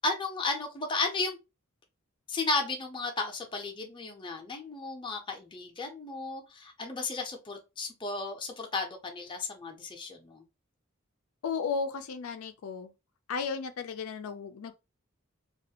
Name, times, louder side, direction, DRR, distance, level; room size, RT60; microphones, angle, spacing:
voice 1, 0.0-1.4 2.3-10.4, left 3 dB, 25° left, 0.5 m, -34 dB
voice 2, 11.4-12.9 13.3-14.7, left 5 dB, 85° left, 0.4 m, -34 dB
2.5 x 2.3 x 2.7 m
head